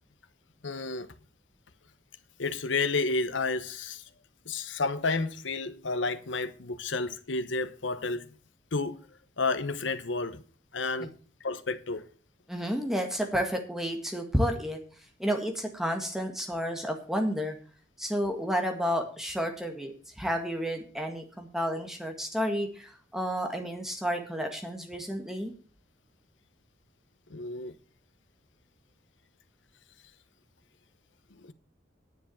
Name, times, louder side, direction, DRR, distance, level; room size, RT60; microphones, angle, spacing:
voice 1, 0.6-1.1 2.4-4.0 4.5-8.3 8.7-9.0 9.4-10.4 10.7-11.1 11.4-12.0 27.3-27.7 31.4-31.5, left 3 dB, 80° left, 1.0 m, -31 dB
voice 2, 12.5-14.8 15.2-17.6 18.0-25.5, equal, ahead, 1.7 m, -31 dB
10.0 x 7.0 x 7.1 m
head